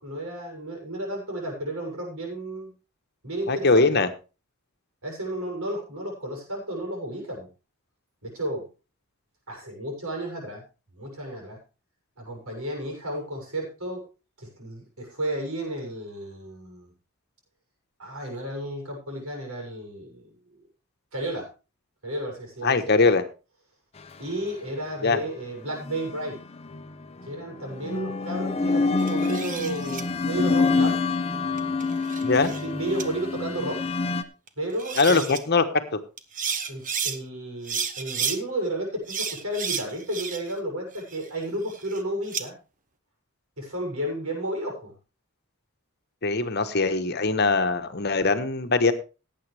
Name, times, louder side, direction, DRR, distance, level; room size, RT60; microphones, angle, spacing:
voice 1, 0.0-2.7 3.2-4.0 5.0-7.5 8.2-8.7 9.5-10.6 10.9-11.6 12.2-14.0 14.4-16.9 18.0-20.3 21.1-21.5 22.0-23.1 24.2-26.4 27.2-31.0 32.3-33.8 34.6-35.4 36.7-42.5 43.6-44.9, right 1 dB, 80° right, 0 dB, 6.9 m, -32 dB
voice 2, 3.5-4.1 22.6-23.2 25.0-25.2 32.2-32.5 35.0-35.6 35.9-36.0 46.2-48.9, left 3 dB, 50° left, 9 dB, 1.2 m, -21 dB
sound 1, 25.9-26.8 27.7-34.2, left 3 dB, 30° left, 0.7 m, -26 dB
sound 2, 29.0-30.0 31.6-32.6 33.0-33.1 34.5-34.6 34.8-35.4 36.2-37.2 37.6-38.4 39.1-40.6 40.9-42.4, right 6 dB, 35° right, 1.0 m, -32 dB
18.0 x 8.6 x 3.4 m, 0.32 s
head